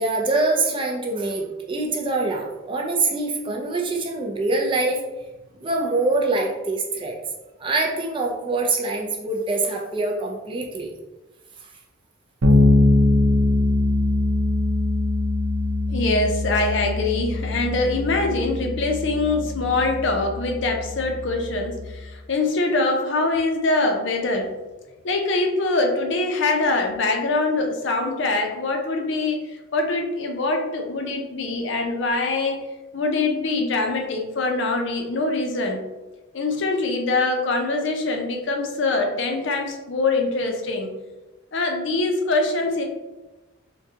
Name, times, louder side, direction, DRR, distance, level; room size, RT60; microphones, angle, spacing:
voice 1, 0.0-5.0 5.6-7.2 7.6-10.9 11.6-11.7, right 2 dB, 25° right, 0 dB, 0.4 m, -24 dB
Bass guitar, 12.4-22.1, left 2 dB, 85° right, 0.6 m, -22 dB
voice 2, 15.9-24.6 25.0-32.6 32.9-35.8 36.3-40.9 41.5-42.8, left 3 dB, 60° left, 2 dB, 0.5 m, -23 dB
3.7 x 2.2 x 2.7 m, 1.1 s
head